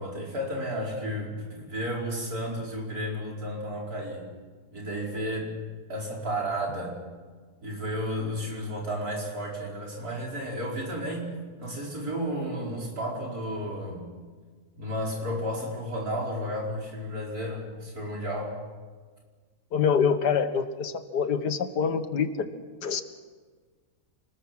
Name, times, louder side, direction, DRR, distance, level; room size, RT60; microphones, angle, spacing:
voice 1, 0.0-4.2 4.7-5.5 5.9-7.0 7.6-14.1 14.7-18.6, equal, 65° right, -2 dB, 5.7 m, -32 dB
voice 2, 19.7-22.5 22.8-23.0, left 6 dB, 85° left, 10 dB, 1.9 m, -25 dB
28.5 x 20.0 x 6.1 m, 1.5 s
omnidirectional pair, 1.7 m